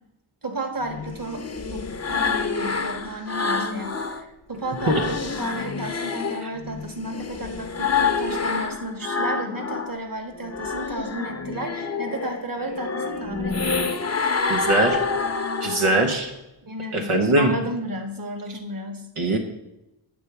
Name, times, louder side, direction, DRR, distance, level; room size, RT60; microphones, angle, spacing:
voice 1, 0.4-14.0 16.6-19.1, right 1 dB, 40° right, 5 dB, 1.3 m, -33 dB
sound 1, 0.8-4.2 4.6-10.0 10.3-16.2, left 4 dB, 30° left, 0.7 m, -27 dB
voice 2, 14.5-15.0 15.6-16.3 16.9-17.5 19.2-19.4, right 2 dB, 85° right, 2 dB, 0.9 m, -21 dB
9.2 x 3.4 x 6.7 m, 0.92 s
wide cardioid pair, 40°, 50 cm